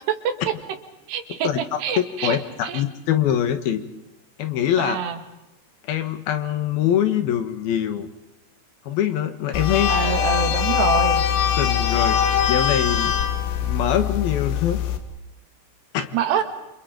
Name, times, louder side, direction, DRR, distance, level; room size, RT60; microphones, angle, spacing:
voice 1, 1.1-1.5 1.8-2.4 2.6-2.8 4.8-5.2 9.9-11.2 16.1-16.4, right 8 dB, 75° right, 8 dB, 3.9 m, -25 dB
voice 2, 1.9-3.8 4.4-5.0 5.8-8.1 8.9-9.9 11.6-12.2 12.5-13.1 13.6-14.8 15.9-16.2, left 10 dB, 70° left, 9 dB, 2.9 m, -23 dB
sound 1, 9.5-15.0, left 9 dB, 85° left, 4.0 m, -22 dB
28.0 x 27.5 x 5.2 m, 0.95 s
omnidirectional pair, 4.9 m